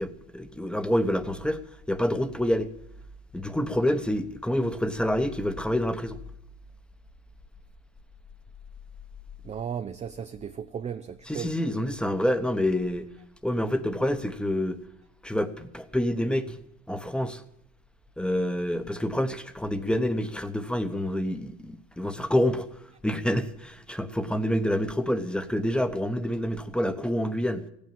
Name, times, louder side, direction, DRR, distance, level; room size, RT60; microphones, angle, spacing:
voice 1, 0.0-1.6 1.9-2.7 3.3-6.2 11.3-13.1 13.4-14.8 15.2-16.6 16.9-17.4 18.2-22.7 23.0-27.6, left 1 dB, 5° left, 1.0 m, -27 dB
voice 2, 9.4-11.5, right 8 dB, 20° right, 0.5 m, -35 dB
15.5 x 8.8 x 9.1 m
supercardioid pair, 100°, 34 cm